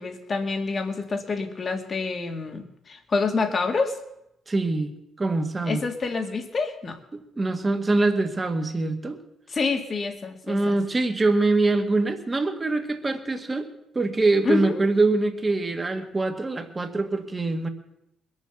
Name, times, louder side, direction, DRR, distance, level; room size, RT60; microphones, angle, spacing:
voice 1, 0.0-4.0 5.7-7.0 9.5-10.8 14.4-14.8, left 4 dB, 40° left, 6 dB, 2.0 m, -27 dB
voice 2, 4.5-5.8 7.1-9.2 10.5-17.7, right 2 dB, 25° right, 5 dB, 1.7 m, -24 dB
21.0 x 7.4 x 7.0 m, 0.82 s
cardioid pair, 90°, 0 cm